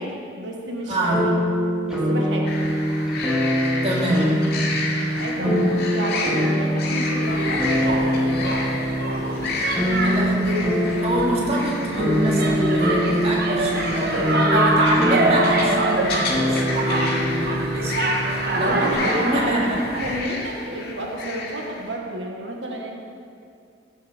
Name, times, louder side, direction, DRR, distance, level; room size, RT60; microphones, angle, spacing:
voice 1, 0.0-1.4 1.9-2.5 5.2-8.6 13.9-14.5 18.5-22.9, right 1 dB, 90° right, 0 dB, 1.4 m, -31 dB
voice 2, 0.9-1.2 3.8-4.5 5.4-5.6 10.0-18.1 18.5-19.8, right 1 dB, 35° right, -3 dB, 2.1 m, -25 dB
sound 1, 1.1-18.9, equal, 5° right, 2.1 m, -24 dB
sound 2, 2.4-21.9, left 3 dB, 55° left, 2.3 m, -32 dB
sound 3, 7.2-20.2, right 2 dB, 55° right, 1.2 m, -26 dB
15.5 x 7.9 x 5.1 m, 2.4 s
head